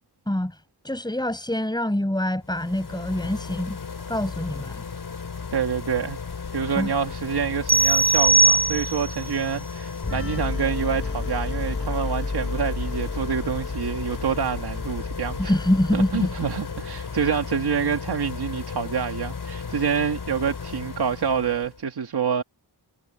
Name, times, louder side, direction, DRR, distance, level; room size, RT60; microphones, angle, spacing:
voice 1, 0.3-3.8 4.1-4.8 6.8-6.9 15.4-16.3 17.1-17.4, left 1 dB, 10° left, 7.4 m, -25 dB
sound 1, 2.4-21.8, left 5 dB, 70° left, 4.1 m, -35 dB
voice 2, 5.5-6.2 6.5-15.5 15.9-22.4, right 6 dB, 75° right, 1.8 m, -27 dB
sound 2, 7.7-9.2, right 4 dB, 25° right, 0.7 m, -19 dB
sound 3, 10.0-17.6, left 3 dB, 35° left, 2.5 m, -32 dB
wide cardioid pair, 70°, 39 cm